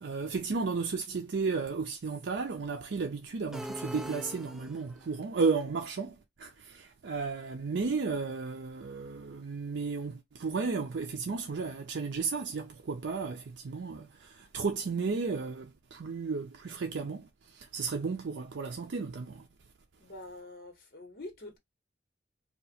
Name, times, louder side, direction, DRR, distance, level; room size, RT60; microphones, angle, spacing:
voice 1, 0.0-19.5, right 4 dB, 85° right, 0.5 m, -34 dB
sound 1, 3.5-5.1, equal, 5° right, 0.4 m, -41 dB
voice 2, 20.0-21.6, left 2 dB, 55° left, 1.0 m, -45 dB
2.9 x 2.4 x 4.1 m
head